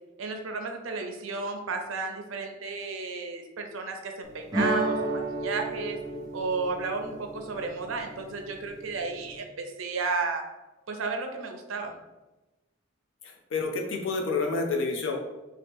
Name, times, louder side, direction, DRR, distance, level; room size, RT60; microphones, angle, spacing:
voice 1, 0.2-6.0 6.3-10.4 10.9-11.9, right 4 dB, 80° right, 4 dB, 0.5 m, -33 dB
sound 1, 4.5-9.4, right 2 dB, 20° right, 0.5 m, -33 dB
voice 2, 13.2-15.2, left 3 dB, 70° left, 2 dB, 0.5 m, -29 dB
2.9 x 2.8 x 3.5 m, 1.1 s
head